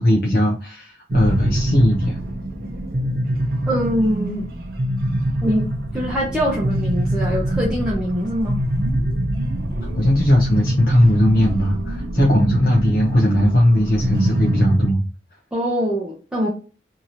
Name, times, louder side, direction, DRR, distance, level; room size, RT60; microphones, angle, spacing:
voice 1, 0.0-2.2 10.0-15.0, equal, 55° left, -1 dB, 0.5 m, -18 dB
sound 1, 1.1-14.9, right 1 dB, 55° right, 0.5 m, -24 dB
voice 2, 3.7-4.5 5.4-8.6 15.5-16.5, equal, 5° right, -4 dB, 0.6 m, -23 dB
2.8 x 2.7 x 2.6 m, 0.35 s
head